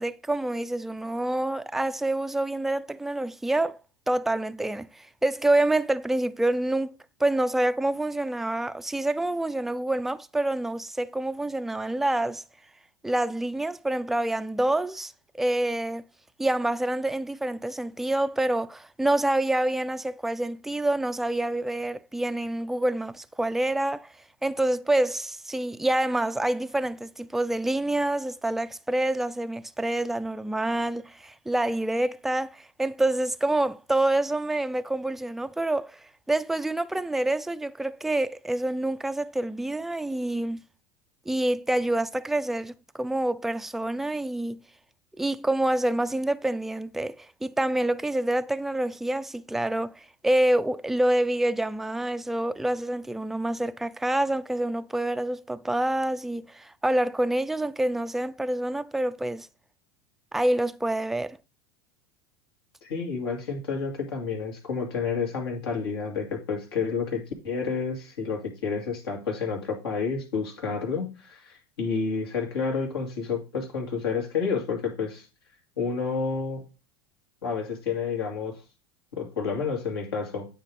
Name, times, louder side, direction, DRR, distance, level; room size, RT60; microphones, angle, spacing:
voice 1, 0.0-3.8 4.1-6.9 7.2-12.4 13.0-16.0 16.4-24.1 24.4-36.0 36.3-40.6 41.3-44.6 45.2-59.5 60.3-61.4, right 1 dB, ahead, 0.3 m, -27 dB
voice 2, 62.8-75.3 75.8-76.6 77.4-78.6 79.1-80.5, left 5 dB, 85° left, 2.5 m, -30 dB
9.1 x 3.9 x 4.7 m
hypercardioid pair, 95°, 12 cm